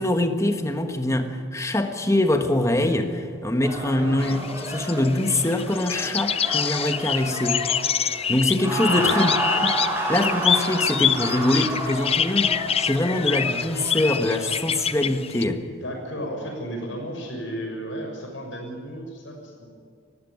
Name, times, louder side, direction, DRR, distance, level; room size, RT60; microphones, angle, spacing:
voice 1, 0.0-7.6 8.3-9.3 9.6-9.8 10.1-15.6, left 1 dB, 15° left, 6 dB, 1.4 m, -24 dB
sound 1, 3.6-14.8, right 1 dB, 10° right, 4.8 m, -31 dB
voice 2, 3.8-4.4 8.6-9.2 15.8-19.7, equal, 70° left, 1 dB, 6.5 m, -34 dB
sound 2, 4.2-15.4, left 8 dB, 30° left, 0.6 m, -26 dB
19.5 x 15.5 x 9.6 m, 2.1 s
head